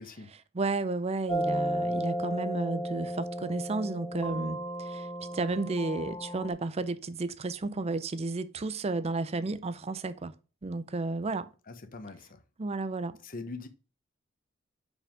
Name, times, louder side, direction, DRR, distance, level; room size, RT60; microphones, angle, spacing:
voice 1, 0.0-0.4 11.7-12.4 13.2-13.7, left 3 dB, 45° left, 0.9 m, -42 dB
voice 2, 0.5-5.1 5.3-10.3 10.6-11.5 12.6-13.2, right 3 dB, 30° right, 0.5 m, -32 dB
sound 1, 1.3-6.5, right 1 dB, 20° left, 1.2 m, -34 dB
5.4 x 5.0 x 5.1 m
head